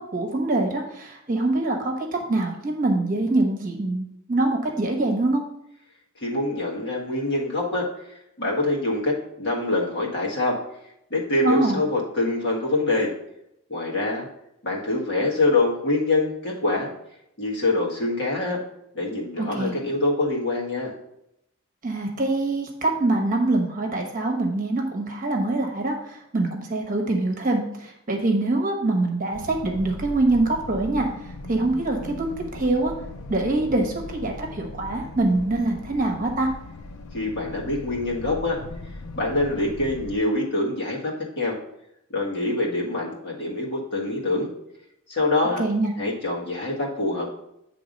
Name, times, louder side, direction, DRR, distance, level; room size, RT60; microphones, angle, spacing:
voice 1, 0.0-5.4 11.4-11.8 19.4-19.7 21.8-31.1 31.5-32.3 32.5-32.9 33.3-36.5 45.6-45.9, right 2 dB, 35° right, 2 dB, 1.1 m, -24 dB
voice 2, 6.2-7.9 8.4-10.6 11.1-13.1 13.7-14.3 14.6-16.9 17.4-18.6 18.9-20.9 37.1-38.6 39.1-41.6 42.1-44.5 45.1-45.6 46.0-47.3, left 2 dB, 50° left, -3 dB, 1.7 m, -25 dB
sound 1, 29.3-40.2, left 2 dB, 75° left, 0.6 m, -39 dB
8.6 x 3.6 x 5.2 m, 0.80 s
head